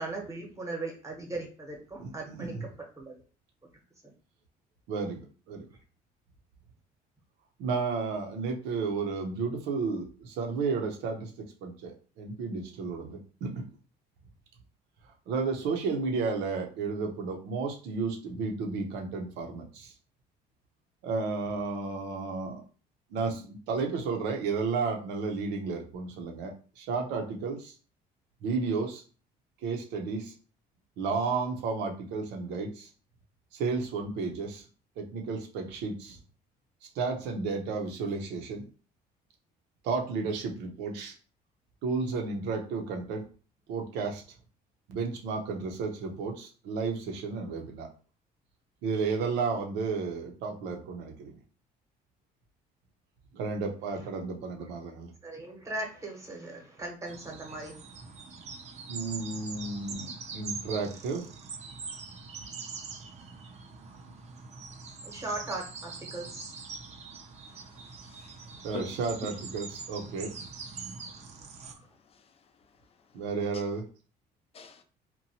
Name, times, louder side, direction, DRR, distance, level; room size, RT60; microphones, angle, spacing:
voice 1, 0.0-2.7 3.0-3.1 55.2-57.7 65.0-66.5 71.2-71.3 71.6-71.9, right 2 dB, 20° right, 0 dB, 0.9 m, -38 dB
voice 2, 2.0-2.7 4.9-5.2 5.5-5.6 7.6-11.3 11.6-13.6 15.3-19.9 21.0-22.6 23.1-27.7 28.4-29.0 29.6-30.3 31.0-32.9 33.5-34.7 35.0-36.2 36.9-38.7 39.8-41.1 41.8-43.2 43.7-44.2 44.9-47.9 48.8-51.4 53.3-55.1 58.9-61.3 68.6-70.3 73.1-73.8, right 4 dB, 90° right, 2 dB, 0.6 m, -32 dB
sound 1, 57.1-71.7, right 5 dB, 40° right, 0.5 m, -43 dB
voice 3, 67.5-68.8 72.1-72.3 73.5-73.6 74.5-74.8, left 6 dB, 35° left, 8 dB, 0.4 m, -45 dB
2.9 x 2.2 x 2.7 m, 0.37 s
cardioid pair, 110°, 17 cm